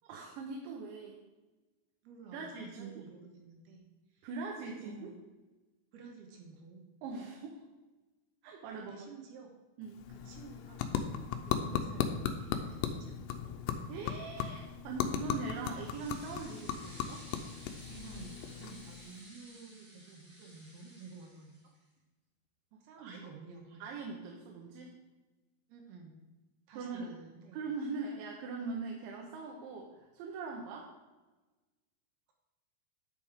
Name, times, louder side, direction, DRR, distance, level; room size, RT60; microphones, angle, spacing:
voice 1, 0.0-1.2 2.3-3.0 4.2-5.1 7.0-7.6 8.4-9.1 9.8-10.0 13.9-17.2 22.7-23.2 23.8-25.0 26.8-27.1 27.5-30.9, right 4 dB, 90° right, -1 dB, 3.3 m, -41 dB
voice 2, 2.0-3.8 4.1-5.2 5.9-6.8 8.7-9.5 10.1-10.9 11.4-13.3 17.9-21.5 22.8-23.8 25.7-26.2 26.7-27.6, right 4 dB, 70° right, 1 dB, 2.9 m, -51 dB
sound 1, 9.8-19.3, left 8 dB, 85° left, 2.8 m, -37 dB
sound 2, 14.9-21.8, equal, 15° right, 1.6 m, -55 dB
9.7 x 6.9 x 3.6 m, 1.2 s
omnidirectional pair, 5.1 m